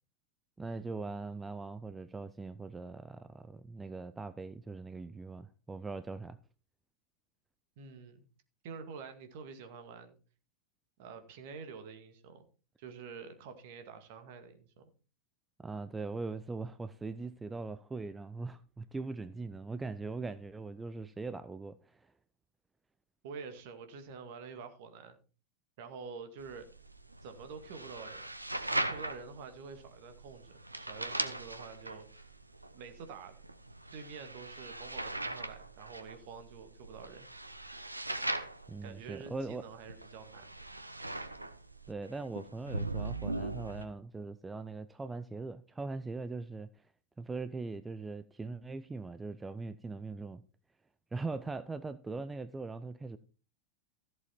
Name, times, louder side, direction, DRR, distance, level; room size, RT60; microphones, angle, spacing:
voice 1, 0.6-6.4 15.6-22.1 38.7-39.6 41.9-46.9 47.2-50.4 51.1-53.2, right 3 dB, 10° right, 0.6 m, -41 dB
voice 2, 7.8-8.2 8.6-10.2 11.0-12.4 12.8-14.8 23.2-25.2 25.8-26.7 27.2-28.3 28.7-32.3 32.7-33.4 33.9-37.3 38.8-40.5, right 5 dB, 50° right, 2.1 m, -47 dB
sound 1, 26.4-43.8, right 2 dB, 85° right, 0.9 m, -40 dB
14.5 x 7.7 x 4.5 m
figure-of-eight pair, 90°, 0 cm